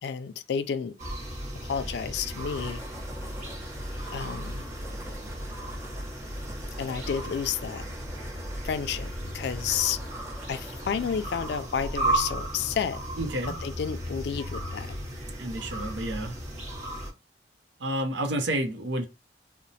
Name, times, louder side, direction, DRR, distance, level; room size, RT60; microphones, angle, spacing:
voice 1, 0.0-1.1 1.6-2.8 4.1-4.7 6.8-7.8 8.6-10.0 10.5-13.0 13.6-14.9, left 7 dB, 65° left, 0.3 m, -31 dB
sound 1, 1.0-17.1, right 1 dB, 40° right, 0.8 m, -35 dB
sound 2, 2.3-13.4, right 1 dB, 15° right, 0.4 m, -45 dB
voice 2, 13.2-13.5 15.4-16.4 17.8-19.1, right 1 dB, 80° right, 0.6 m, -30 dB
2.9 x 2.1 x 2.6 m
head